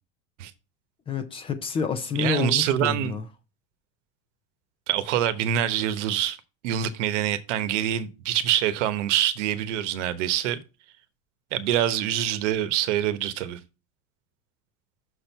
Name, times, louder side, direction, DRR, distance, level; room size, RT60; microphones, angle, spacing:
voice 1, 1.1-3.2, left 5 dB, 15° left, 0.4 m, -28 dB
voice 2, 2.1-3.2 4.9-6.4 6.6-10.6 11.5-13.6, right 11 dB, 80° right, 1.0 m, -25 dB
6.5 x 4.5 x 5.6 m
supercardioid pair, 170°, 35 cm